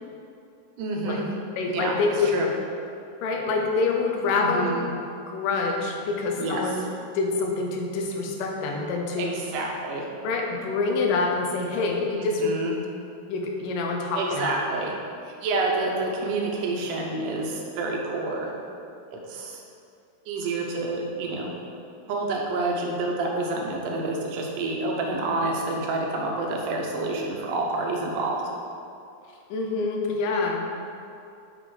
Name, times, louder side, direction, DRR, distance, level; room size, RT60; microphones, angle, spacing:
voice 1, 0.8-1.3 1.7-2.0 2.3-2.5 4.3-4.9 6.4-6.7 9.2-10.0 12.1-12.8 14.1-14.9 15.2-18.5 19.1-19.6 20.3-21.5 22.1-28.4, right 2 dB, 80° right, -1 dB, 2.3 m, -28 dB
voice 2, 1.6-2.4 3.2-4.7 5.3-6.8 7.1-9.4 10.2-12.5 13.3-14.5 29.5-30.8, left 3 dB, 85° left, 1 dB, 2.4 m, -26 dB
6.6 x 3.9 x 4.8 m, 2.5 s
omnidirectional pair, 3.8 m